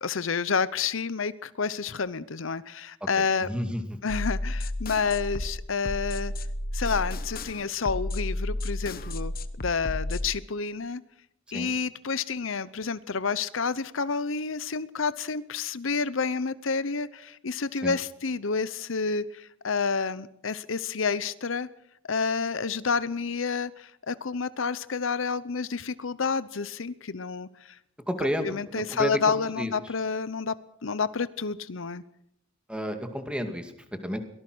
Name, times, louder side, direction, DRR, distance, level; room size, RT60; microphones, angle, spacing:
voice 1, 0.0-3.5 4.0-6.3 6.7-9.3 9.6-11.0 11.5-21.7 22.1-27.8 28.4-32.0, left 5 dB, 70° left, 16 dB, 0.8 m, -29 dB
voice 2, 3.2-4.0 11.5-11.7 17.8-18.0 28.1-29.2 29.6-29.7 32.7-33.7 34.0-34.2, equal, 5° right, 6 dB, 2.3 m, -31 dB
sound 1, 4.1-10.3, left 1 dB, 45° left, 1.1 m, -32 dB
23.0 x 18.5 x 6.2 m, 0.72 s
head